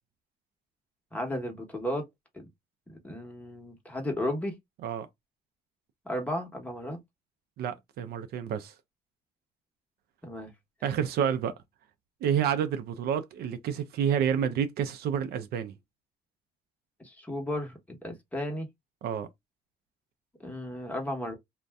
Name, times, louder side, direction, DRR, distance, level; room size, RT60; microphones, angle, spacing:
voice 1, 1.1-2.1 2.3-2.5 2.9-4.6 6.0-7.0 10.2-10.5 17.0-18.7 20.4-21.3, left 1 dB, 10° left, 1.0 m, -34 dB
voice 2, 7.6-8.7 10.8-11.5 12.2-15.7 19.0-19.3, right 8 dB, 70° right, 0.5 m, -29 dB
2.5 x 2.2 x 3.4 m
cardioid pair, 110°, 17 cm